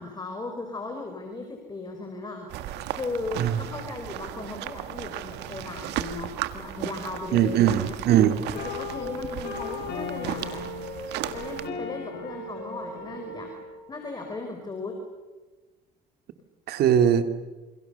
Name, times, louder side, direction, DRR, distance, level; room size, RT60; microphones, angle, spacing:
voice 1, 0.0-8.0 8.7-10.7 11.3-13.5 13.9-15.0, left 3 dB, 25° left, 4 dB, 4.7 m, -37 dB
sound 1, 2.5-11.7, right 13 dB, 85° right, 1.7 m, -36 dB
voice 2, 7.3-8.4 16.7-17.3, right 10 dB, 70° right, 8 dB, 2.6 m, -20 dB
sound 2, 8.5-13.8, left 3 dB, 75° left, 7.6 m, -36 dB
29.0 x 28.5 x 7.0 m, 1.2 s
cardioid pair, 110°, 17 cm